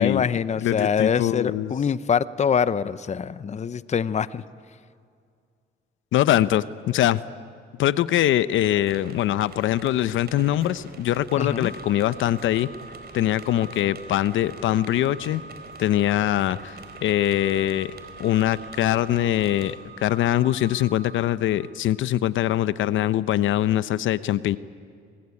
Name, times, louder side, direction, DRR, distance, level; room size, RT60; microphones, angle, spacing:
voice 1, 0.0-4.4 11.4-11.7, left 7 dB, 35° left, 16 dB, 0.7 m, -24 dB
voice 2, 0.6-1.7 6.1-7.2 7.8-12.7 13.1-15.4 15.8-17.9 18.2-24.6, left 13 dB, 80° left, 16 dB, 0.7 m, -23 dB
sound 1, 8.5-19.8, right 4 dB, 55° right, 4.3 m, -46 dB
Organ, 11.2-22.0, right 3 dB, 85° right, 2.7 m, -45 dB
24.5 x 20.0 x 9.8 m, 2.2 s
cardioid pair, 90°, 20 cm